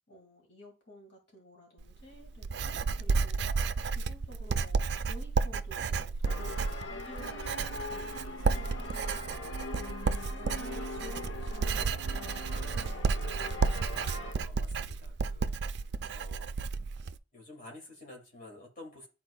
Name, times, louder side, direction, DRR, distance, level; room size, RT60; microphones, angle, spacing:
voice 1, 0.1-3.6 3.9-9.5 10.2-13.9, equal, 65° left, 0 dB, 2.2 m, -53 dB
Writing, 1.8-17.2, right 4 dB, 60° right, 0.3 m, -32 dB
sound 1, 6.2-14.3, left 3 dB, 80° left, 0.9 m, -42 dB
voice 2, 14.3-16.5 17.3-19.1, left 2 dB, 45° left, -1 dB, 2.5 m, -50 dB
10.5 x 4.2 x 2.3 m, 0.30 s
head